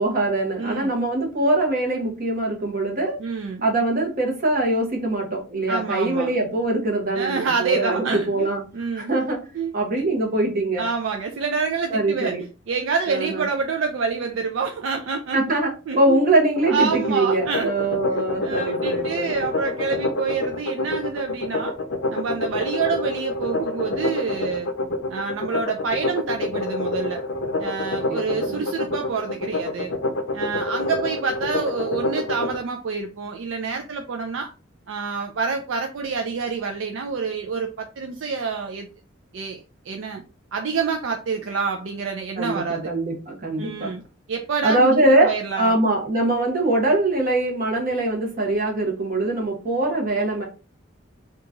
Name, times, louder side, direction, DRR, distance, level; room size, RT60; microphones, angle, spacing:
voice 1, 0.0-3.2 3.6-8.6 9.0-9.4 9.7-10.9 11.9-12.4 13.1-13.4 15.3-15.7 16.0-19.3 28.5-28.7 42.4-43.9 44.6-45.3 45.6-50.5, right 2 dB, 45° right, 1.0 m, -22 dB
voice 2, 0.6-0.9 3.2-3.6 5.7-6.3 7.1-9.1 9.5-10.1 10.8-15.6 15.9-16.2 16.7-17.7 18.1-21.7 22.1-24.7 25.1-27.2 27.6-29.9 30.3-34.5 34.9-38.9 39.3-40.2 40.5-42.9 43.6-44.0 44.3-45.0 45.2-45.8 49.2-49.3, right 5 dB, 65° right, 0.4 m, -27 dB
sound 1, 16.6-32.6, left 2 dB, 65° left, 0.5 m, -27 dB
2.9 x 2.4 x 3.6 m
head